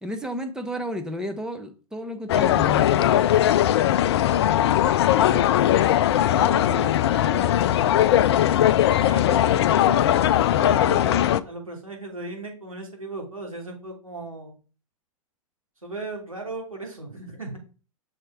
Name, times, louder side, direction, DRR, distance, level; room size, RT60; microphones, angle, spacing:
voice 1, 0.0-3.2, equal, 5° right, 0.9 m, -32 dB
sound 1, 2.3-11.4, left 11 dB, 50° left, 0.5 m, -19 dB
voice 2, 6.2-8.3 8.9-10.1 10.5-14.6 15.8-17.6, right 2 dB, 85° right, 3.0 m, -37 dB
6.5 x 4.3 x 4.7 m
figure-of-eight pair, 100°, 17 cm